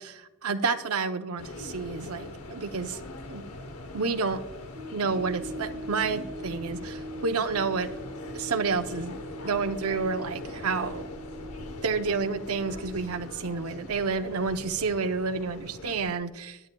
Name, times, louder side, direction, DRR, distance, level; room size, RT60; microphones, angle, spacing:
voice 1, 0.0-3.0 3.3-3.4 3.9-4.4 4.9-8.0 8.3-11.0 11.8-16.6, right 4 dB, 80° right, 8 dB, 0.6 m, -30 dB
sound 1, 1.4-16.1, left 2 dB, 85° left, 0.9 m, -42 dB
sound 2, 4.7-13.9, equal, 55° right, 1.6 m, -42 dB
20.0 x 8.7 x 2.2 m, 1.0 s
head